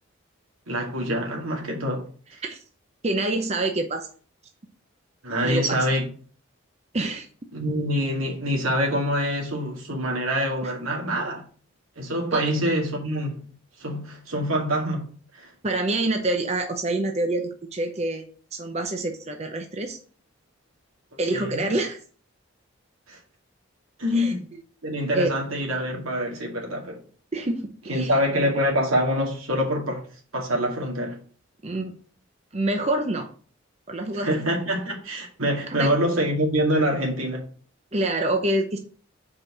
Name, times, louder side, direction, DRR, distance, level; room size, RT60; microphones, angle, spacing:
voice 1, 0.7-2.1 5.2-6.1 7.5-11.4 12.0-13.4 13.8-15.1 15.3-15.5 21.3-21.6 23.1-23.2 24.0-24.5 24.8-27.0 27.9-30.0 30.3-31.2 34.1-37.4, equal, 90° right, 2.2 m, -25 dB
voice 2, 3.0-4.1 5.4-5.9 6.9-7.3 10.6-10.7 12.3-12.4 15.6-18.2 18.5-20.0 21.2-22.0 24.1-24.3 25.1-25.3 27.3-28.1 31.6-31.9 32.5-33.3 33.9-34.3 35.7-35.9 37.9-38.8, right 2 dB, 30° right, 0.7 m, -26 dB
4.9 x 4.8 x 5.8 m
head